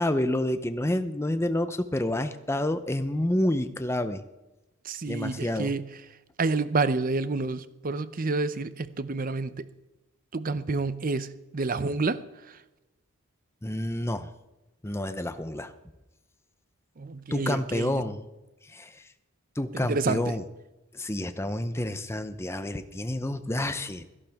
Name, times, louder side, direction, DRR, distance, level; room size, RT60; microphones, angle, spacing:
voice 1, 0.0-4.2 5.1-5.7 13.6-14.3 14.8-15.7 17.3-18.3 18.7-19.0 19.6-20.4 20.9-24.0, left 1 dB, 10° left, 0.7 m, -29 dB
voice 2, 4.8-5.9 6.4-9.6 10.3-12.2 12.5-12.6 17.0-18.0 19.7-20.3, right 3 dB, 40° right, 0.6 m, -29 dB
17.0 x 14.5 x 3.6 m
head